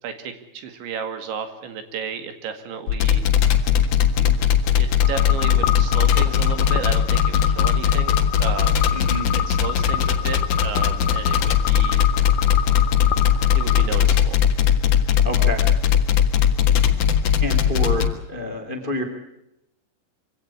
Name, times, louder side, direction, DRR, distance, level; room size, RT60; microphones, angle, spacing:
voice 1, 0.0-3.3 4.8-8.8 9.5-12.1 13.5-14.4, right 6 dB, 75° right, 9 dB, 4.5 m, -33 dB
sound 1, 2.9-18.1, left 9 dB, 55° left, 2.5 m, -18 dB
sound 2, 5.0-13.9, left 12 dB, 85° left, 3.6 m, -28 dB
voice 2, 8.9-9.3 15.2-15.6 17.4-19.0, left 1 dB, 15° left, 7 dB, 1.7 m, -28 dB
24.5 x 17.0 x 9.8 m, 0.84 s
omnidirectional pair, 5.4 m